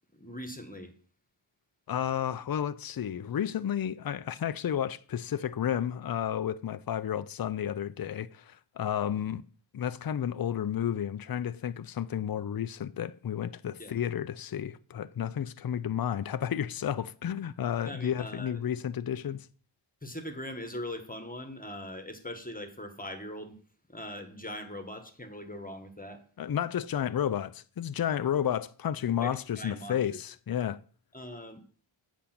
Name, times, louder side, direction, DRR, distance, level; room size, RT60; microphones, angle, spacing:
voice 1, 0.1-0.9 13.8-13.9 17.8-18.6 20.0-23.6 23.9-26.2 29.2-30.2 30.5-30.6 31.1-31.6, left 1 dB, 15° left, 1.4 m, -41 dB
voice 2, 1.9-9.4 9.7-19.5 26.4-30.8, left 9 dB, 45° left, 0.5 m, -32 dB
8.6 x 5.1 x 5.9 m
wide cardioid pair, 70°, 50 cm